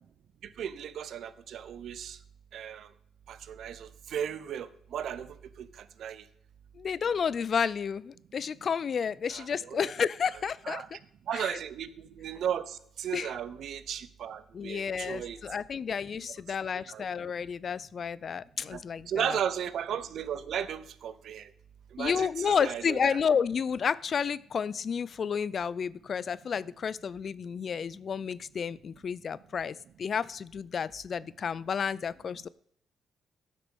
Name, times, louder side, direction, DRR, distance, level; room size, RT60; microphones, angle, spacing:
voice 1, 0.6-2.2 2.5-2.9 3.3-5.7 6.0-6.2 9.3-9.9 10.6-10.9 11.3-15.4 16.2-16.3 16.9-17.0 18.7-18.8 19.1-21.5 21.9-23.2, right 9 dB, 70° right, 15 dB, 0.7 m, -35 dB
voice 2, 6.8-10.8 11.3-11.6 13.1-13.3 14.5-19.4 22.0-32.5, left 6 dB, 50° left, 20 dB, 0.4 m, -31 dB
11.0 x 6.1 x 6.3 m, 0.67 s
cardioid pair, 90°, 0 cm